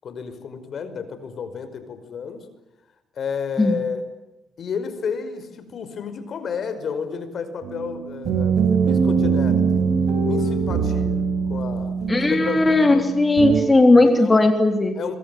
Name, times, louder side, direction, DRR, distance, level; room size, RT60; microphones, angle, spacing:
voice 1, 0.0-2.5 3.2-4.1 4.6-9.9 10.2-11.2 11.5-12.0 12.3-13.0 14.0-14.5 15.0-15.2, left 6 dB, 55° left, 11 dB, 5.4 m, -31 dB
sound 1, 7.6-13.6, right 5 dB, 75° right, 6.2 m, -22 dB
voice 2, 12.1-15.0, left 2 dB, 20° left, 6 dB, 3.5 m, -17 dB
26.5 x 24.0 x 9.3 m, 0.96 s
cardioid pair, 90°, 0 cm